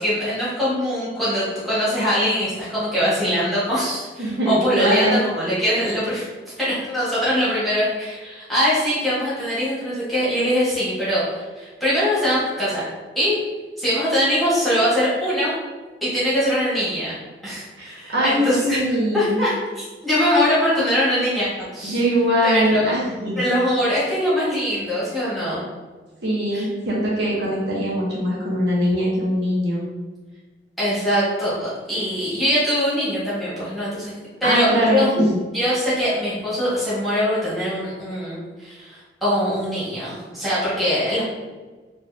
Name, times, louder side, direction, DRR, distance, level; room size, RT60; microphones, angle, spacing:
voice 1, 0.0-6.3 6.6-12.8 13.1-13.4 13.8-15.5 16.0-17.1 17.4-22.0 22.4-22.9 23.4-25.6 26.5-26.7 30.8-34.1 34.4-35.1 35.5-41.3, equal, ahead, -11 dB, 1.4 m, -22 dB
voice 2, 4.2-5.2 17.8-19.4 21.8-23.4 26.2-29.8 34.4-35.3, equal, 75° right, -5 dB, 1.0 m, -22 dB
4.5 x 2.6 x 2.7 m, 1.3 s
head